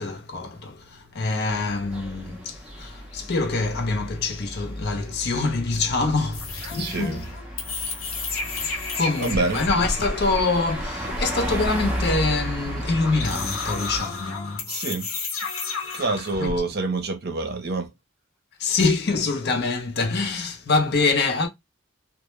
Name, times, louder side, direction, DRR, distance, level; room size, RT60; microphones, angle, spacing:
voice 1, 0.0-7.2 8.5-14.7 16.4-16.6 18.6-21.5, left 3 dB, 50° left, 0.5 m, -25 dB
sound 1, 1.5-14.0, equal, 5° right, 0.5 m, -34 dB
sound 2, 6.3-16.6, left 3 dB, 85° left, 0.8 m, -32 dB
voice 2, 6.7-7.3 9.2-9.6 14.7-15.1 15.9-17.9, right 3 dB, 50° right, 0.6 m, -27 dB
2.1 x 2.1 x 3.0 m
head